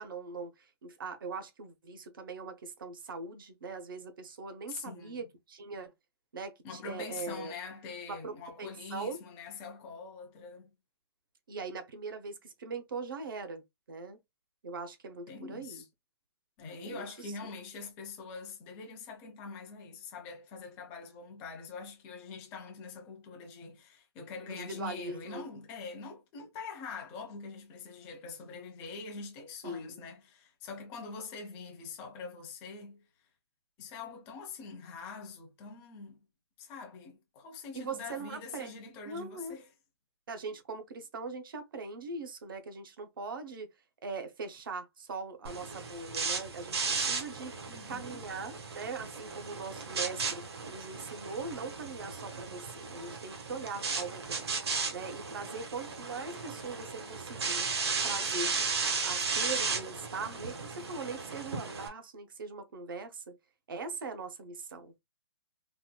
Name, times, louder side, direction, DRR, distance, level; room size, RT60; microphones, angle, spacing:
voice 1, 0.0-5.9 6.3-7.5 8.1-9.2 11.5-14.2 14.6-15.8 16.8-17.5 24.5-25.5 29.6-30.0 37.7-38.7 39.0-39.6 40.3-43.7 44.0-54.5 54.9-57.7 58.0-58.6 59.0-63.4 63.7-65.0, right 4 dB, 50° right, 0.9 m, -41 dB
voice 2, 4.7-5.3 6.6-10.7 15.3-15.8 16.6-33.1 33.8-36.3 36.6-39.7 47.7-48.2, left 4 dB, 15° left, 0.6 m, -44 dB
sound 1, 45.4-61.9, right 4 dB, 70° right, 1.3 m, -35 dB
4.1 x 2.5 x 2.2 m
hypercardioid pair, 175°, 14 cm